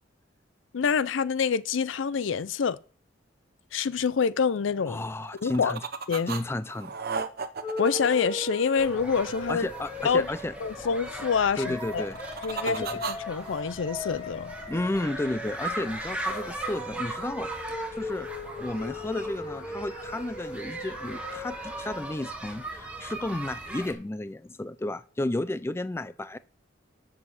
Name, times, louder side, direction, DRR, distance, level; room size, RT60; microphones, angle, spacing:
voice 1, 0.7-2.8 3.7-5.0 5.4-5.8 6.1-6.3 7.8-9.7 10.0-10.3 10.6-12.1 12.4-14.5, left 6 dB, 85° left, 0.5 m, -26 dB
voice 2, 4.9-5.8 6.3-7.0 9.5-10.5 11.6-12.2 12.6-13.0 14.7-18.3 18.6-26.4, left 1 dB, 15° left, 0.4 m, -32 dB
sound 1, 5.2-6.4 6.7-9.2 11.8-13.6, right 5 dB, 55° right, 0.8 m, -35 dB
sound 2, 7.6-22.3, left 1 dB, 30° left, 2.0 m, -39 dB
sound 3, 8.8-23.9, right 2 dB, 5° right, 1.5 m, -39 dB
8.2 x 7.5 x 6.4 m
head